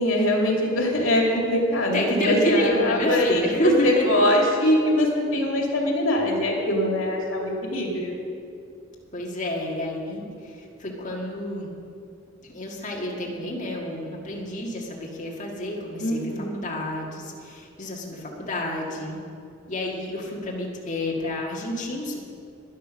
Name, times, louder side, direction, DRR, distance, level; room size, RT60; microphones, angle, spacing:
voice 1, 0.0-3.4 3.8-8.2 16.0-16.5, left 1 dB, 85° left, 0 dB, 2.3 m, -23 dB
voice 2, 1.9-4.2 9.1-11.7 12.5-19.2 19.7-22.2, left 1 dB, 40° left, -3 dB, 1.7 m, -28 dB
12.0 x 10.5 x 6.1 m, 2.5 s
head